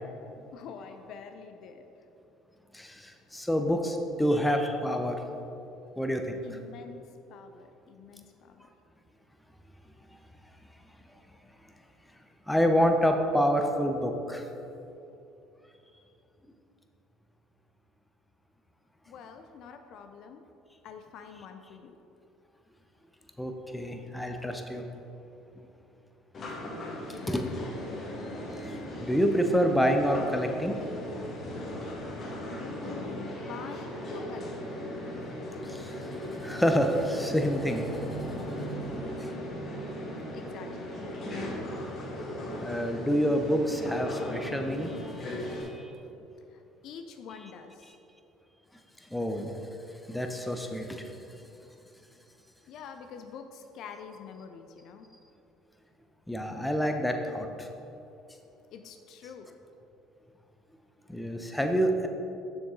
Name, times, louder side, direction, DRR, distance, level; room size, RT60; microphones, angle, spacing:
voice 1, 0.5-1.8 6.4-7.0 7.3-8.7 19.1-20.4 20.8-21.9 27.1-27.4 32.6-34.9 40.0-41.0 46.5-47.9 52.7-55.1 58.7-59.5, left 6 dB, 60° left, 7 dB, 0.4 m, -46 dB
voice 2, 2.7-5.2 6.0-6.4 12.5-14.5 23.4-24.8 27.3-27.5 29.0-30.7 35.7-37.9 39.2-39.3 42.6-45.3 45.6-45.9 49.1-49.5 50.1-51.1 56.3-57.7 61.1-62.1, equal, 5° left, 5 dB, 0.8 m, -27 dB
sound 1, 26.3-45.6, left 1 dB, 40° left, 1.7 m, -37 dB
7.1 x 6.3 x 3.8 m, 2.9 s
hypercardioid pair, 65°, 0 cm